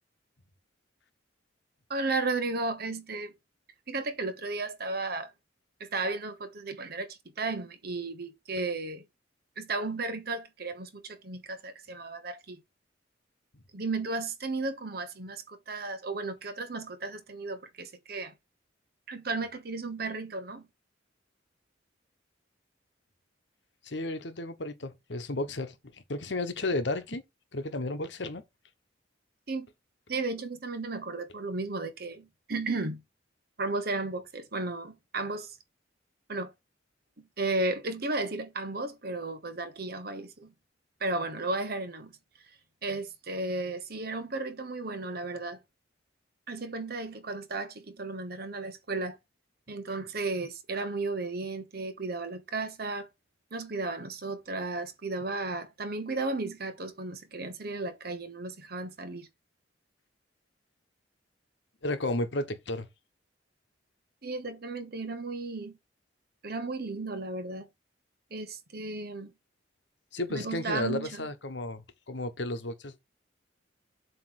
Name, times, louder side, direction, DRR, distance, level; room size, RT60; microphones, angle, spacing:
voice 1, 1.9-3.3 3.9-5.3 5.8-9.0 9.6-12.6 13.7-18.3 19.1-20.7 29.5-29.7 30.1-33.0 33.6-35.6 36.3-36.5 37.2-40.5 41.0-42.2 42.8-45.6 46.5-49.2 49.7-53.1 53.5-59.3 64.2-65.8 66.4-67.7 68.3-69.3 70.3-71.3, right 3 dB, 55° right, 1.2 m, -34 dB
voice 2, 23.8-27.2 27.5-28.4 61.8-62.9 70.1-72.9, left 2 dB, 65° left, 1.2 m, -33 dB
7.6 x 3.2 x 6.3 m
head